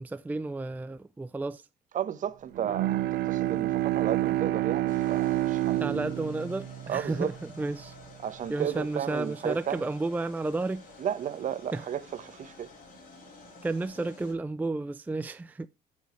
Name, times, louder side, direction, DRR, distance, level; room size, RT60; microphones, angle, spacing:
voice 1, 0.0-1.7 5.8-8.0 8.5-10.8 11.7-11.9 13.6-15.7, right 2 dB, 10° right, 0.4 m, -32 dB
voice 2, 1.9-5.9 6.9-7.3 8.2-9.9 11.0-12.7, right 9 dB, 50° right, 1.1 m, -33 dB
Bowed string instrument, 2.5-7.9, right 15 dB, 75° right, 0.7 m, -29 dB
sound 1, 4.9-14.3, left 2 dB, 55° left, 4.9 m, -51 dB
14.0 x 6.4 x 3.1 m
cardioid pair, 110°, 17 cm